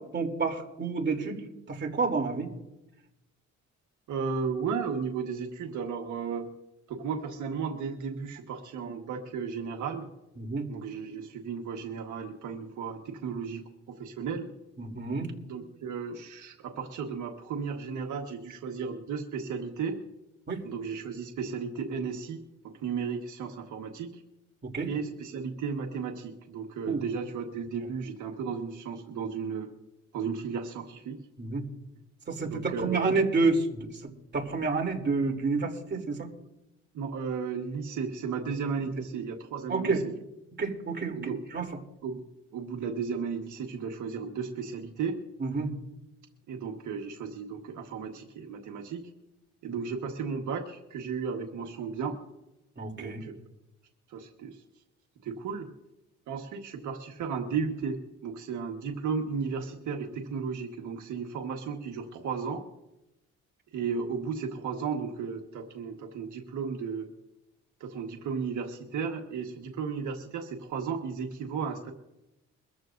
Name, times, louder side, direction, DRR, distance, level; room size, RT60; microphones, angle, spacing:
voice 1, 0.0-1.4 1.7-2.5 10.4-10.7 14.8-15.3 20.5-20.6 24.6-24.9 26.9-27.0 31.4-31.6 32.3-33.9 34.3-36.3 39.7-40.0 40.6-41.2 41.5-41.6 45.4-45.7 52.8-53.2, right 4 dB, 35° right, 1 dB, 3.2 m, -29 dB
voice 2, 4.1-6.5 6.9-10.1 10.7-14.5 15.5-20.0 20.6-24.2 24.9-29.7 30.1-31.2 32.4-33.1 36.9-40.1 41.1-41.4 42.0-42.2 42.5-45.2 46.5-49.1 49.6-52.2 53.0-53.3 54.1-54.6 55.2-55.7 56.3-62.6 63.7-67.1 67.8-71.9, right 5 dB, 75° right, 2 dB, 1.6 m, -34 dB
23.5 x 14.0 x 2.6 m, 0.94 s
cardioid pair, 90°, 30 cm